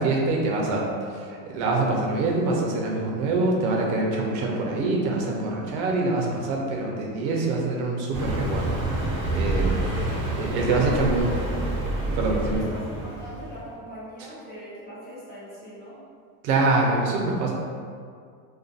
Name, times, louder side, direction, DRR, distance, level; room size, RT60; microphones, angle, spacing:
voice 1, 0.0-9.7 10.4-11.2 12.1-12.7 16.4-17.5, right 3 dB, 65° right, -1 dB, 0.7 m, -25 dB
Car passing by, 8.1-13.6, right 1 dB, 25° right, 0.9 m, -27 dB
voice 2, 9.7-10.0 10.6-11.2 11.5-11.6 12.3-16.0, equal, 20° left, -11 dB, 0.7 m, -40 dB
2.4 x 2.4 x 2.5 m, 2.1 s
supercardioid pair, 130°, 45 cm